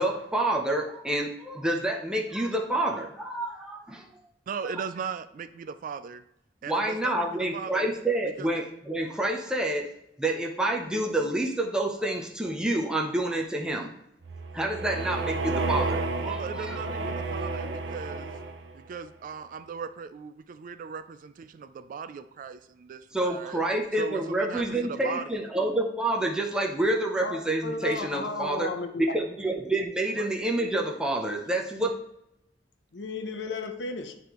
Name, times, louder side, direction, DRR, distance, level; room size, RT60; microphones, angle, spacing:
voice 1, 0.0-4.1 6.7-9.9 10.2-13.9 14.5-16.0 16.2-16.7 17.6-17.7 23.1-31.9, right 1 dB, 5° right, 0.6 m, -28 dB
voice 2, 4.5-6.2 6.6-7.9 8.4-8.5 16.2-18.3 18.7-23.6 24.0-25.4 30.1-30.3, right 6 dB, 50° right, 0.3 m, -38 dB
sound 1, 14.2-18.9, right 3 dB, 90° right, 0.7 m, -31 dB
voice 3, 27.2-29.1 32.9-34.2, left 3 dB, 75° left, 0.8 m, -34 dB
9.3 x 3.4 x 3.0 m
head